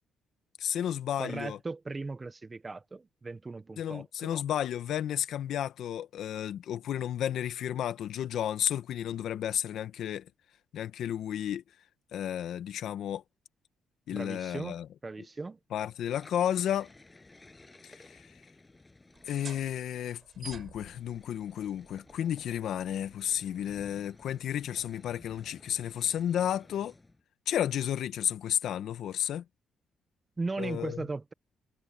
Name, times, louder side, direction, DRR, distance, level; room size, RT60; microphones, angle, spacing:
voice 1, 0.6-1.6 3.8-10.2 10.7-11.6 12.1-13.2 14.1-14.9 15.7-16.9 17.8-18.0 19.3-26.9 27.5-29.4 30.6-31.0, left 10 dB, 75° left, 1.4 m, -32 dB
voice 2, 1.2-4.3 14.1-14.7 15.0-15.6 30.4-31.3, right 3 dB, 25° right, 1.3 m, -37 dB
sound 1, 16.1-19.8 20.8-27.2, left 2 dB, 20° left, 7.5 m, -56 dB
sound 2, 19.1-26.4, right 6 dB, 45° right, 5.9 m, -53 dB
cardioid pair, 90°, 0 cm